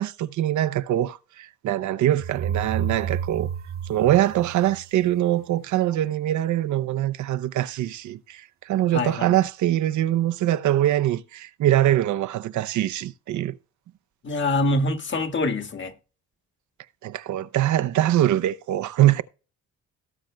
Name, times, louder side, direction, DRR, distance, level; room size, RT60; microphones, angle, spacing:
voice 1, 0.0-3.5 3.9-13.6 17.0-19.2, right 13 dB, 75° right, 0.7 m, -23 dB
sound 1, 2.2-5.1, right 8 dB, 30° right, 0.7 m, -30 dB
voice 2, 8.9-9.4 14.2-15.9, left 2 dB, 40° left, 1.5 m, -25 dB
18.0 x 7.3 x 2.2 m
cardioid pair, 90°, 30 cm